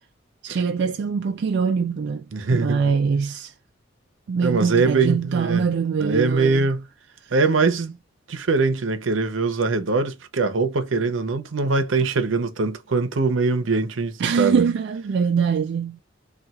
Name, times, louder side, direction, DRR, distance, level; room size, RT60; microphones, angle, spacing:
voice 1, 0.4-2.3 2.5-3.5 4.3-6.7 14.2-16.0, right 5 dB, 60° right, 0.3 m, -23 dB
voice 2, 2.3-3.0 4.4-5.7 6.0-6.9 7.3-8.0 8.3-14.6, right 4 dB, 85° right, 0.7 m, -22 dB
4.2 x 2.4 x 2.3 m
head